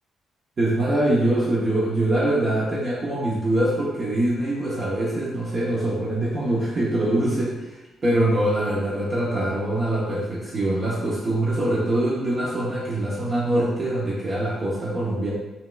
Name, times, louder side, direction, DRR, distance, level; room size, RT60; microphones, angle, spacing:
voice 1, 0.6-15.3, right 1 dB, 30° right, -6 dB, 0.7 m, -23 dB
5.6 x 3.1 x 2.2 m, 1.1 s
cardioid pair, 155°, 0 cm